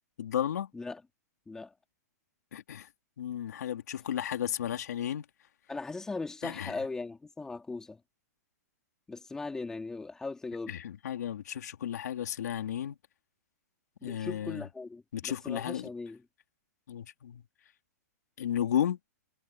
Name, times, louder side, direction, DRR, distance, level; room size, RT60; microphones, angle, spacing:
voice 1, 0.2-0.7 2.5-2.9 3.2-5.3 6.4-6.7 10.7-13.0 14.0-14.6 15.1-15.9 16.9-17.4 18.4-19.0, left 10 dB, 75° left, 3.4 m, -33 dB
voice 2, 5.7-8.0 9.1-10.7 14.0-16.2, left 3 dB, 5° left, 2.9 m, -39 dB
hypercardioid pair, 160°, 9 cm